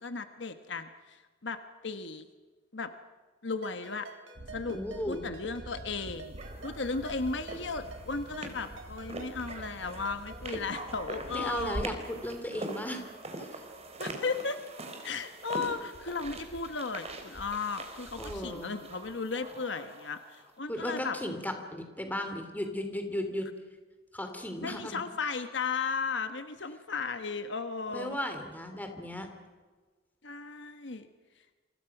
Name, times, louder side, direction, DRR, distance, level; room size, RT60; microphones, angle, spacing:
voice 1, 0.0-2.3 2.7-2.9 3.4-4.1 4.5-4.8 5.1-6.3 6.6-11.9 14.0-14.6 15.0-21.2 24.6-28.2 30.2-31.1, left 4 dB, 65° left, 9 dB, 1.3 m, -35 dB
Ringtone, 3.6-10.5, right 4 dB, 85° right, 3.1 m, -51 dB
sound 1, 4.4-13.3 13.7-14.1 14.3-14.4 15.6-19.3, right 1 dB, 55° right, 1.2 m, -47 dB
voice 2, 4.7-5.3 11.3-13.1 13.4-13.6 18.2-18.8 20.7-23.5 24.1-25.0 27.9-29.3, left 1 dB, 10° left, 6 dB, 3.1 m, -36 dB
sound 2, 6.4-20.4, right 2 dB, 35° right, 3.8 m, -44 dB
28.5 x 25.5 x 6.0 m, 1.4 s
head